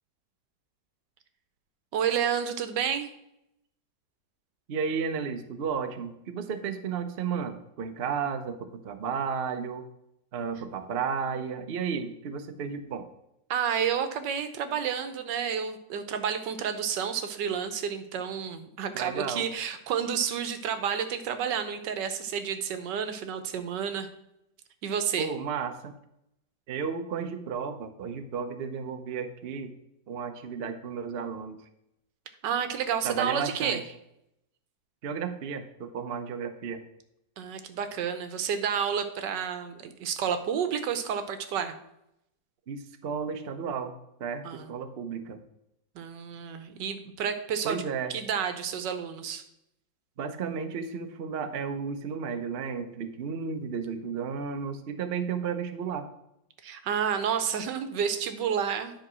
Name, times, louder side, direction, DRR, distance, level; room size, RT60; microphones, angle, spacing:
voice 1, 1.9-3.1 13.5-24.1 24.8-25.3 32.4-33.8 37.4-41.8 44.4-44.7 45.9-47.8 48.1-49.4 56.6-58.9, right 8 dB, 75° right, 9 dB, 1.4 m, -30 dB
voice 2, 4.7-9.8 10.3-13.1 18.9-19.4 25.2-25.9 26.7-29.7 30.1-31.6 33.0-33.8 35.0-36.8 42.7-43.9 44.2-45.4 47.6-48.1 50.2-56.1, right 6 dB, 60° right, 8 dB, 0.6 m, -33 dB
10.0 x 3.8 x 6.1 m, 0.82 s
omnidirectional pair, 2.0 m